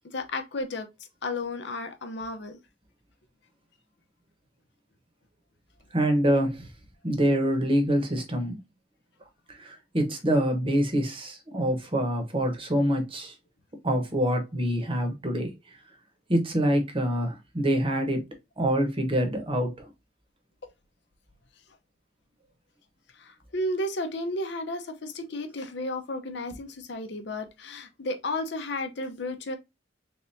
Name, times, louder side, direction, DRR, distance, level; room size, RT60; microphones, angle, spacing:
voice 1, 0.0-0.9 1.2-2.6 23.2-29.6, left 1 dB, 65° left, 0.7 m, -33 dB
voice 2, 5.9-6.7 7.0-8.6 9.5-13.3 13.8-15.5 16.3-18.3 18.6-19.9, equal, 30° right, 1.0 m, -25 dB
3.5 x 3.4 x 2.6 m
head